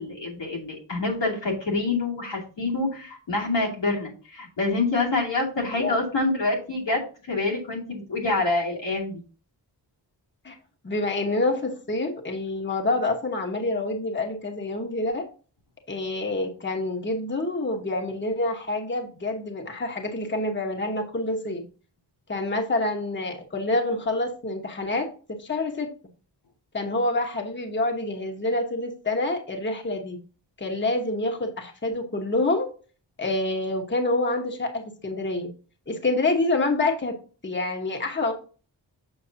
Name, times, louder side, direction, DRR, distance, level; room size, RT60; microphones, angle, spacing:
voice 1, 0.0-9.2, left 3 dB, 85° left, -3 dB, 2.6 m, -26 dB
voice 2, 10.8-15.2 15.9-21.6 22.3-25.1 25.4-25.9 26.7-30.2 30.6-32.7 33.2-35.5 35.9-37.1 37.4-38.3, left 2 dB, 25° left, 2 dB, 1.1 m, -27 dB
7.2 x 6.2 x 2.7 m, 0.37 s
wide cardioid pair, 115°, 43 cm